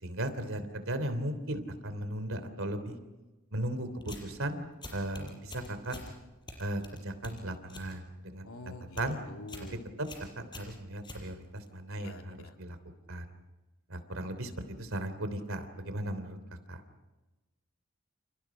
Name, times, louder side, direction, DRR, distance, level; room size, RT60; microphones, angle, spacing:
voice 1, 0.0-3.0 3.5-4.7 4.9-6.0 6.6-8.5 9.0-9.2 10.0-10.1 10.5-12.8 13.1-13.2 13.9-14.5 14.8-16.4 16.7-16.8, right 1 dB, 70° right, 10 dB, 3.2 m, -36 dB
sound 1, 4.0-4.4 4.8-6.1 6.5-7.9 8.3-8.6 8.8-9.1 9.5-9.7 10.0-11.7, left 2 dB, 20° left, 6.1 m, -46 dB
voice 2, 8.4-9.0 9.3-9.7 12.0-12.5, left 2 dB, 85° left, 3 dB, 2.9 m, -46 dB
29.5 x 29.0 x 5.1 m, 1.1 s
head